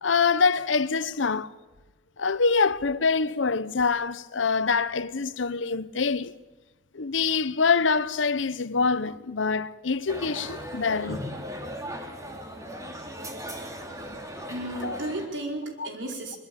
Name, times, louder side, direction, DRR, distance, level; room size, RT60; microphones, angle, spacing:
voice 1, 0.0-1.5 2.2-6.3 6.9-11.2 14.8-15.0 15.8-15.9, left 4 dB, 85° left, 0.9 m, -25 dB
sound 1, 10.1-15.3, equal, 15° right, 2.9 m, -37 dB
voice 2, 14.5-16.4, right 2 dB, 80° right, 4.9 m, -34 dB
23.0 x 22.5 x 8.9 m
head